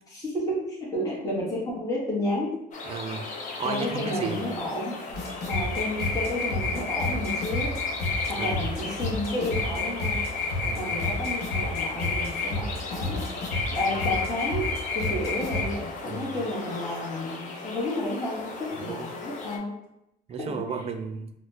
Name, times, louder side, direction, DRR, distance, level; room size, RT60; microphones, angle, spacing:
voice 1, 0.1-2.6 3.6-5.0 5.5-7.7 8.3-10.2 10.8-13.3 13.7-19.7 20.4-20.6, left 1 dB, 20° left, -6 dB, 1.1 m, -31 dB
sound 1, 2.7-19.6, left 3 dB, 50° left, 0.6 m, -38 dB
voice 2, 2.9-3.3 3.6-4.5 8.3-8.6 10.6-10.9 16.1-16.3 18.7-19.1 20.3-21.3, right 5 dB, 35° right, 7 dB, 0.4 m, -34 dB
sound 2, 5.1-15.6, left 3 dB, 70° left, 1.1 m, -29 dB
4.1 x 2.1 x 2.7 m, 0.83 s
cardioid pair, 110°, 17 cm